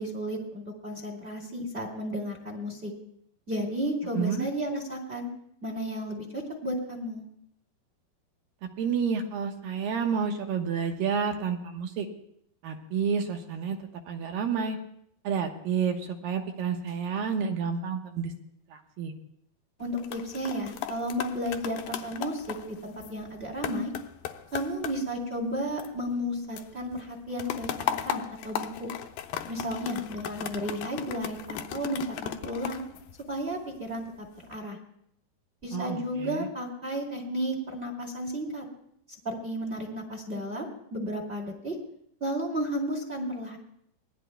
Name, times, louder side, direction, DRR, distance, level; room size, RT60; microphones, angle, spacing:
voice 1, 0.0-2.9 3.5-5.3 5.6-7.2 19.8-23.9 24.5-28.9 29.5-32.8 33.3-34.8 35.6-38.6 39.2-41.7 42.2-43.6, equal, 20° right, 0 dB, 1.7 m, -33 dB
voice 2, 4.1-4.5 8.6-12.1 12.6-13.8 14.1-14.8 15.2-18.3 18.7-19.1 35.7-36.5, right 6 dB, 65° right, 4 dB, 2.5 m, -30 dB
sound 1, 19.8-26.3 26.6-33.8 34.3-34.6, left 11 dB, 75° left, 2.2 m, -37 dB
25.5 x 19.5 x 2.2 m, 0.70 s
omnidirectional pair, 4.8 m